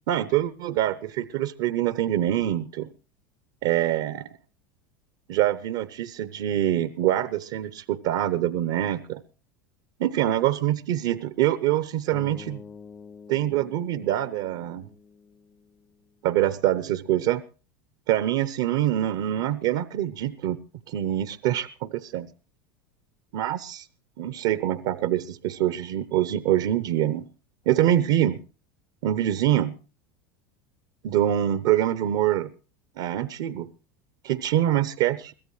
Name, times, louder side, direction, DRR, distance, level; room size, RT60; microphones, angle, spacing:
voice 1, 0.1-2.9 3.6-4.3 5.3-9.2 10.0-12.6 13.3-14.9 16.2-17.4 18.1-20.6 20.9-22.3 23.3-23.9 24.2-27.2 27.7-28.4 29.0-29.7 31.0-32.5 33.0-33.7 34.2-35.3, right 12 dB, 60° right, 15 dB, 0.8 m, -25 dB
sound 1, 12.1-16.3, left 5 dB, 15° left, 0.7 m, -47 dB
22.5 x 16.0 x 3.2 m, 0.36 s
hypercardioid pair, 85°, 11 cm